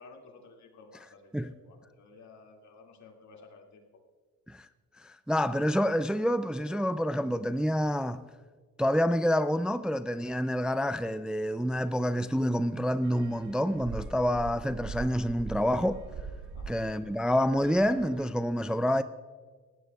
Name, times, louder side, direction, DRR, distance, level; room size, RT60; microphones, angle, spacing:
voice 1, 0.0-3.8 16.5-16.8, left 4 dB, 65° left, 2.3 m, -53 dB
voice 2, 5.0-8.2 8.8-16.0 16.7-19.0, equal, 5° right, 0.3 m, -28 dB
sound 1, 13.0-18.3, right 4 dB, 70° right, 1.8 m, -42 dB
19.5 x 15.5 x 2.3 m
cardioid pair, 90°, 30 cm